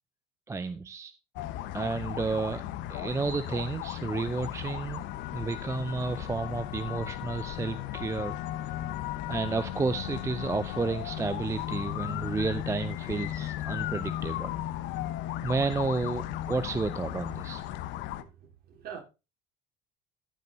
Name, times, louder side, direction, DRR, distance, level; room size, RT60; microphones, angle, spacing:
voice 1, 0.5-1.1 1.7-2.6 2.9-5.0 5.3-8.8 9.3-14.5 15.4-17.6, right 4 dB, 15° right, 0.5 m, -31 dB
sound 1, 1.4-18.2, left 13 dB, 70° left, 1.0 m, -36 dB
voice 2, 18.2-19.0, right 8 dB, 55° right, 3.7 m, -44 dB
14.0 x 5.4 x 4.0 m
supercardioid pair, 105°, 19 cm